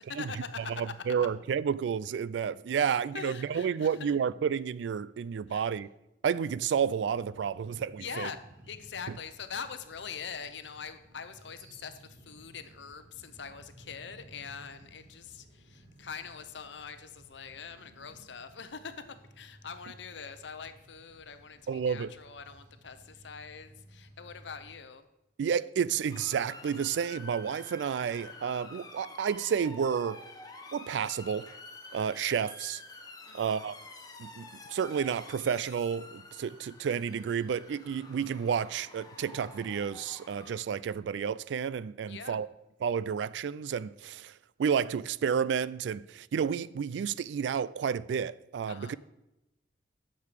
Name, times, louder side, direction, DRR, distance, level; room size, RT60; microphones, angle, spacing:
voice 1, 0.0-0.9 1.2-1.3 3.1-4.1 5.5-5.7 8.0-8.4 8.7-25.1 33.3-33.7 42.0-42.4 48.7-49.0, left 6 dB, 70° left, 0.7 m, -43 dB
voice 2, 0.8-5.9 6.2-8.3 21.7-22.1 25.4-30.3 30.7-31.5 31.9-32.8 33.3-33.8 34.2-42.5 42.8-44.3 44.6-49.0, right 7 dB, 65° right, 0.3 m, -31 dB
sound 1, 7.1-24.7, right 1 dB, 45° right, 2.7 m, -56 dB
Motor vehicle (road) / Siren, 26.1-40.6, left 3 dB, 20° left, 0.9 m, -49 dB
9.7 x 6.7 x 5.0 m
head